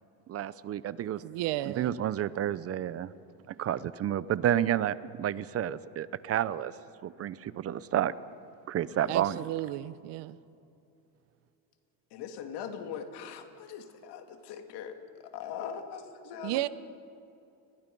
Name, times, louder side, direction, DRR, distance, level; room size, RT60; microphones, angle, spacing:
voice 1, 0.3-1.2 1.7-3.1 3.6-6.7 7.0-8.1 8.7-9.4, right 11 dB, 30° right, 17 dB, 0.6 m, -30 dB
voice 2, 1.2-1.9 9.1-10.4 16.4-16.7, right 16 dB, 60° right, 16 dB, 0.9 m, -33 dB
voice 3, 8.7-9.2 12.1-16.7, left 8 dB, 60° left, 6 dB, 2.6 m, -41 dB
29.5 x 21.5 x 5.4 m, 2.7 s
cardioid pair, 135°, 46 cm